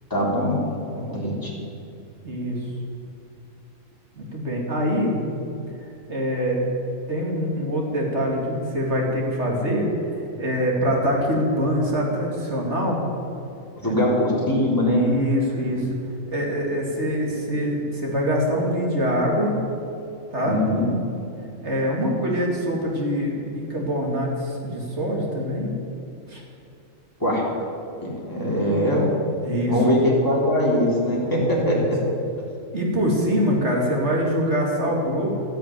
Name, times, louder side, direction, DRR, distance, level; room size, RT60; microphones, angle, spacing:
voice 1, 0.1-0.6 1.1-1.5 13.8-15.0 20.4-21.0 27.2-27.5 28.0-29.1 29.7-32.0, equal, 15° left, -5 dB, 3.6 m, -21 dB
voice 2, 0.9-1.2 2.2-2.6 4.2-5.2 6.1-6.6 7.1-9.9 10.4-13.0 13.8-13.9 14.9-15.9 16.3-19.5 20.3-20.6 21.6-25.7 26.3-26.4 29.4-29.7 31.5-31.7 32.7-35.3, equal, 60° right, -2 dB, 3.0 m, -24 dB
12.5 x 10.0 x 9.2 m, 2.6 s
omnidirectional pair, 1.3 m